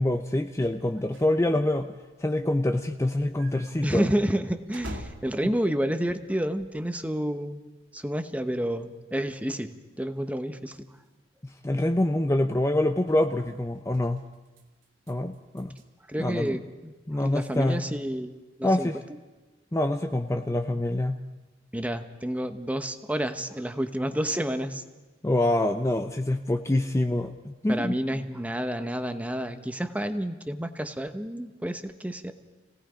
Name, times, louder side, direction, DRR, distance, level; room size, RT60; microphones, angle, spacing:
voice 1, 0.0-1.9 2.2-4.1 11.6-14.2 15.1-15.7 16.2-16.6 17.1-17.8 18.6-19.0 19.7-21.2 25.2-27.9, left 1 dB, 15° left, 6 dB, 0.6 m, -25 dB
sound 1, 0.6-7.1 7.3-7.4 8.0-8.1 8.8-8.9 9.1-9.2 9.4-9.8 10.0-11.1 11.8-12.0 13.0-13.3 13.7-15.9, equal, 90° right, 2.4 m, -48 dB
voice 2, 3.8-7.6 7.9-10.9 16.1-18.3 18.6-18.9 21.7-24.8 27.7-32.3, right 1 dB, 10° right, 8 dB, 1.0 m, -30 dB
29.5 x 18.0 x 5.1 m, 1.2 s
head